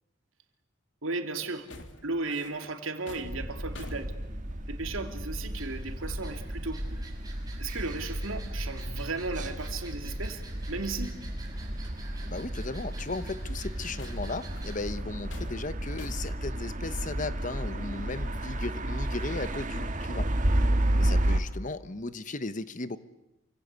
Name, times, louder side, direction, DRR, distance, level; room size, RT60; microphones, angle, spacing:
voice 1, 1.0-1.7 2.0-4.1 4.7-6.9 7.6-10.4 10.7-11.1, right 3 dB, 85° right, 6 dB, 2.9 m, -35 dB
sound 1, 1.6-4.9 6.8-6.9 7.2-7.7 8.0-8.3 8.7-8.8 9.2-9.4 10.4-10.5 11.9-12.0 13.6-16.5, left 2 dB, 65° left, 3.1 m, -49 dB
sound 2, 3.2-21.4, right 1 dB, 40° right, 1.8 m, -32 dB
sound 3, 5.5-14.8, right 3 dB, 20° right, 6.1 m, -50 dB
voice 2, 12.2-20.3 21.0-23.0, left 3 dB, 40° left, 13 dB, 1.1 m, -36 dB
28.0 x 25.5 x 8.3 m, 0.90 s
head